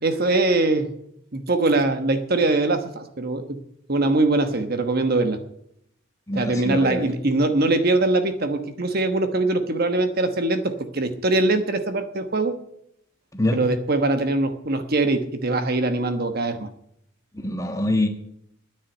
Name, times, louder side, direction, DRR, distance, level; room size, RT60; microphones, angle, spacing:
voice 1, 0.0-0.9 1.3-3.6 3.9-5.4 6.3-12.6 13.5-16.7, right 2 dB, 45° right, 8 dB, 1.2 m, -22 dB
voice 2, 6.3-7.1 13.3-13.6 17.4-18.1, left 1 dB, 15° left, 5 dB, 1.4 m, -24 dB
10.0 x 9.5 x 9.0 m, 0.73 s
head